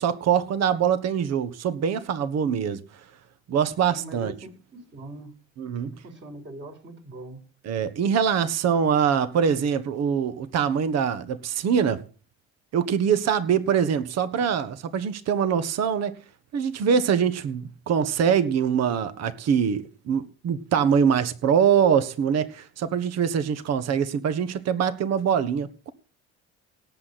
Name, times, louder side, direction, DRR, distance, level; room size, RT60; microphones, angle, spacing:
voice 1, 0.0-2.8 3.5-4.3 5.6-5.9 7.6-12.0 12.7-16.2 16.5-25.9, right 7 dB, 55° right, 12 dB, 1.5 m, -23 dB
voice 2, 3.9-5.3 5.8-7.4, right 2 dB, 40° right, 3 dB, 4.5 m, -42 dB
18.0 x 8.3 x 4.2 m, 0.36 s
cardioid pair, 105°, 30 cm